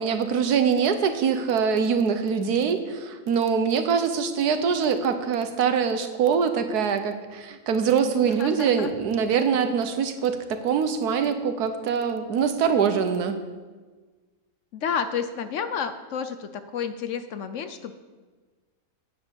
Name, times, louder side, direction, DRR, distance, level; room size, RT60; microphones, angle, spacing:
voice 1, 0.0-13.3, right 6 dB, 90° right, 8 dB, 1.5 m, -23 dB
voice 2, 8.3-8.9 14.7-17.9, left 7 dB, 65° left, 10 dB, 0.9 m, -30 dB
9.3 x 8.0 x 7.0 m, 1.4 s
omnidirectional pair, 1.6 m